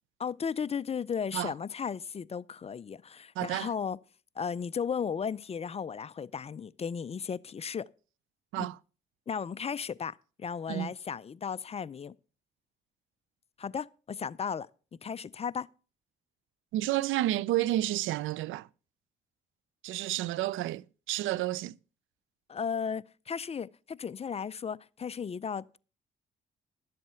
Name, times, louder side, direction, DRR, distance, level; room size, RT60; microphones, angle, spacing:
voice 1, 0.2-4.0 4.4-7.9 8.6-8.7 9.3-12.1 13.6-14.7 15.0-15.7 22.5-25.8, left 6 dB, 30° left, 0.5 m, -35 dB
voice 2, 3.4-3.7 8.5-8.8 10.7-10.9 16.7-18.7 19.8-21.7, right 15 dB, 80° right, 0.4 m, -30 dB
12.0 x 7.7 x 5.6 m
cardioid pair, 90°, 20 cm